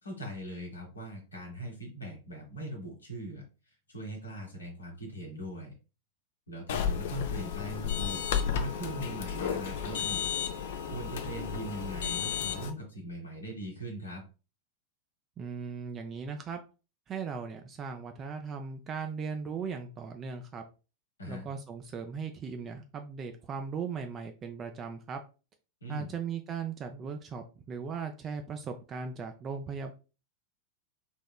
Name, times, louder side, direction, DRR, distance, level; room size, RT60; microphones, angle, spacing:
voice 1, 0.0-3.4 3.9-5.7 6.5-8.2 8.5-10.3 10.9-14.2 21.2-21.5 25.8-26.1, right 1 dB, 75° left, 1 dB, 1.0 m, -40 dB
sound 1, 6.7-12.7, left 8 dB, 55° left, 0.4 m, -33 dB
voice 2, 15.4-16.6 17.1-20.6 21.2-25.2 25.9-29.9, right 5 dB, 25° right, 5 dB, 0.4 m, -38 dB
3.6 x 3.0 x 2.2 m, 0.32 s
figure-of-eight pair, 90°, 0 cm